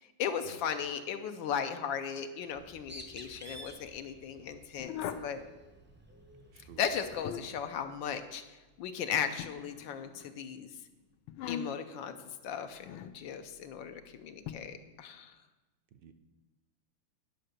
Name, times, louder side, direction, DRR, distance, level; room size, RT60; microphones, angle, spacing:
voice 1, 0.2-4.9 5.2-5.4 6.8-8.4 8.8-10.7 11.5-12.1 12.4-15.3, left 7 dB, 75° left, 8 dB, 1.4 m, -36 dB
Bird, 2.5-7.4, equal, 10° right, 0.5 m, -52 dB
sound 1, 4.8-5.4 6.9-7.7 9.4-10.3 11.3-11.9 12.8-13.2 14.5-14.6, left 9 dB, 90° left, 1.5 m, -40 dB
voice 2, 6.5-6.8 15.9-16.1, right 9 dB, 70° right, 7 dB, 1.2 m, -54 dB
10.0 x 5.7 x 6.6 m, 1.1 s
omnidirectional pair, 2.2 m